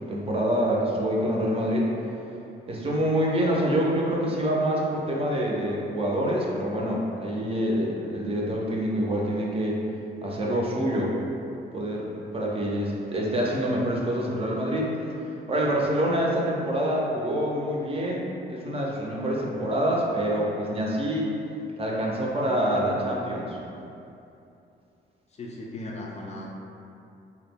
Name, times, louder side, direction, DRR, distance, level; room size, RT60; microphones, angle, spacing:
voice 1, 0.1-1.9 2.7-9.8 10.2-11.2 11.7-12.1 12.3-14.9 15.5-21.3 21.8-23.6, equal, 30° right, -3 dB, 0.4 m, -26 dB
voice 2, 25.4-26.5, left 2 dB, 35° left, -2 dB, 0.4 m, -37 dB
2.2 x 2.0 x 3.3 m, 2.7 s
cardioid pair, 90°, 20 cm